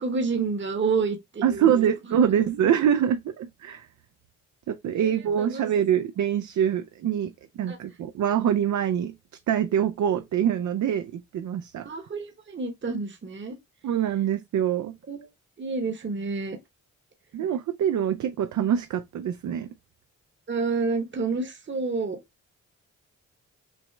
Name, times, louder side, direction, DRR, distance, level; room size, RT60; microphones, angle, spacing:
voice 1, 0.0-2.3 4.9-5.6 7.7-7.8 11.8-13.6 15.1-15.2 15.6-16.6 20.5-22.2, right 4 dB, 40° right, 1.0 m, -29 dB
voice 2, 1.4-3.9 4.7-9.2 9.5-11.9 13.8-15.0 17.3-19.7, right 9 dB, 70° right, 0.5 m, -25 dB
6.0 x 2.1 x 3.2 m
cardioid pair, 60°, 31 cm